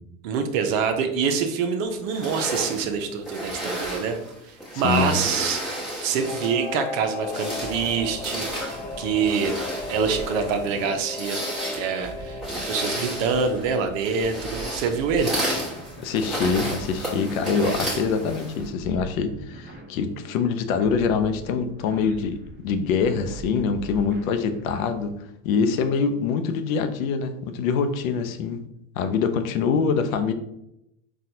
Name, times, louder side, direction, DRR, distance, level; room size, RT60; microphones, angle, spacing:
voice 1, 0.2-4.1 4.4-5.6 6.0-9.5 9.9-11.4 11.7-15.4, right 6 dB, 70° right, 6 dB, 0.6 m, -25 dB
sound 1, 2.1-6.7 7.1-18.7, right 1 dB, ahead, 1.1 m, -32 dB
voice 2, 4.8-5.2 16.0-25.1 25.4-28.6 28.9-30.3, left 5 dB, 85° left, 9 dB, 0.5 m, -24 dB
Singing / Musical instrument, 6.2-16.3 16.6-16.7, left 4 dB, 25° left, 0.3 m, -37 dB
sound 2, 7.6-25.2, right 5 dB, 25° right, 0.7 m, -43 dB
4.1 x 2.3 x 2.7 m, 0.82 s
supercardioid pair, 100°, 40 cm